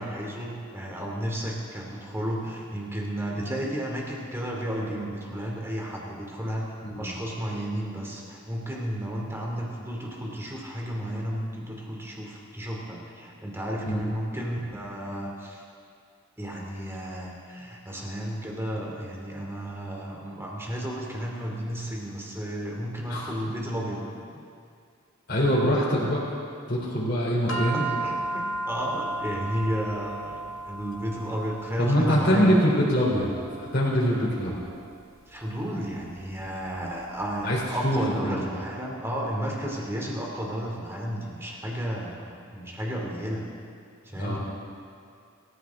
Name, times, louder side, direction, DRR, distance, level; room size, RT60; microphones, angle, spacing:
voice 1, 0.0-15.6 16.4-24.0 24.3-24.4 27.5-32.6 35.3-43.5 44.0-44.4, equal, 10° right, -2 dB, 2.7 m, -33 dB
voice 2, 25.3-26.2 26.7-27.8 31.8-33.3 33.6-34.6 37.4-38.5 44.2-44.4, equal, 50° left, -5 dB, 3.4 m, -24 dB
sound 1, 27.5-38.0, right 2 dB, 85° left, 1.7 m, -36 dB
24.5 x 14.0 x 3.7 m, 2.3 s
head